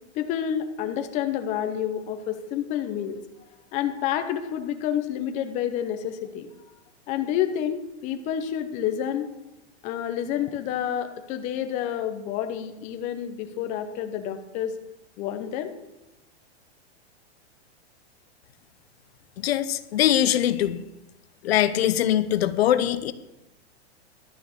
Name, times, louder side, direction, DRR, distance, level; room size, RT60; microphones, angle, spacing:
voice 1, 0.1-3.2 3.7-6.5 7.1-9.3 9.8-14.7 15.2-15.7, left 10 dB, 20° left, 7 dB, 0.7 m, -29 dB
voice 2, 19.4-20.8 21.4-23.1, left 11 dB, 65° left, 13 dB, 0.8 m, -22 dB
12.0 x 6.5 x 6.5 m, 0.92 s
supercardioid pair, 160°, 34 cm